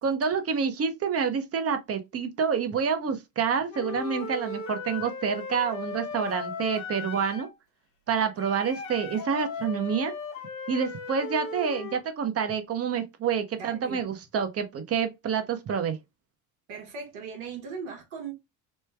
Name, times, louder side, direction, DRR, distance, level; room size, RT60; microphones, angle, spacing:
voice 1, 0.0-7.5 8.1-10.1 10.7-16.0, right 6 dB, 35° right, 0.8 m, -28 dB
Wind instrument woodwind instrument, 3.7-7.5 8.4-12.0, left 5 dB, 80° left, 1.0 m, -37 dB
voice 2, 13.5-14.0 16.7-18.3, right 5 dB, 75° right, 1.3 m, -38 dB
3.2 x 2.2 x 3.2 m
hypercardioid pair, 70°, 41 cm